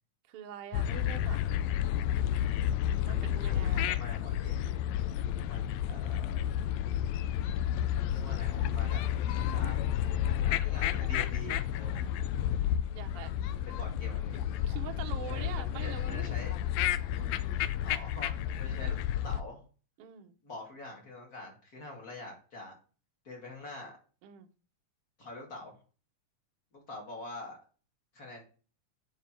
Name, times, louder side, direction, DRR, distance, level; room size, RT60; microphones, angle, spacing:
voice 1, 0.3-1.4 3.0-3.9 12.6-13.3 14.7-16.3 17.1-17.6 20.0-20.3 24.2-24.5, right 10 dB, 85° right, 6 dB, 1.3 m, -45 dB
sound 1, 0.7-19.4, left 11 dB, 85° left, 1.5 m, -31 dB
voice 2, 3.5-4.7 5.5-6.3 8.1-9.0 9.5-9.8 10.4-12.0 13.7-14.5 15.3-16.5 17.8-19.0 19.2-19.6 20.4-22.7 23.2-23.9 25.2-25.8 26.7-27.6 28.1-28.4, left 2 dB, 30° left, 0 dB, 2.5 m, -45 dB
8.1 x 5.6 x 4.5 m, 0.37 s
omnidirectional pair, 3.7 m